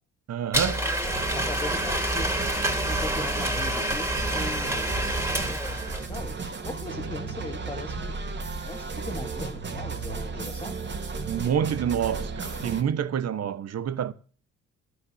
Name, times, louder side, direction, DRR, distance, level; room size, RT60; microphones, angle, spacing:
voice 1, 0.3-1.0 11.3-14.1, right 8 dB, 55° right, 1.2 m, -27 dB
Domestic sounds home sounds, 0.5-6.2, right 1 dB, 10° right, 3.3 m, -28 dB
sound 1, 1.0-12.8, right 4 dB, 40° right, 2.5 m, -34 dB
voice 2, 1.3-2.3 2.9-4.9 5.4-5.6 6.1-6.4 6.6-8.1 8.6-10.8, left 2 dB, 15° left, 1.4 m, -39 dB
12.5 x 6.6 x 8.2 m
cardioid pair, 90°, 30 cm